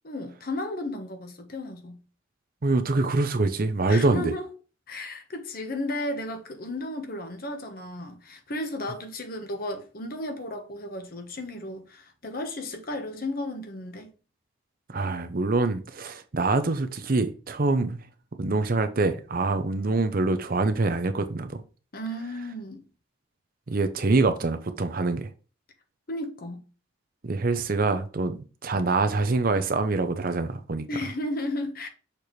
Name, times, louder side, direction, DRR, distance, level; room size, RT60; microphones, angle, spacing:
voice 1, 0.0-2.0 3.9-4.5 4.9-14.1 21.9-22.8 26.1-26.6 30.9-31.9, left 1 dB, 50° left, 1.1 m, -34 dB
voice 2, 2.6-4.3 14.9-18.0 18.4-21.6 23.7-25.3 27.2-30.8, right 3 dB, 50° right, 0.7 m, -25 dB
6.7 x 4.4 x 3.1 m
head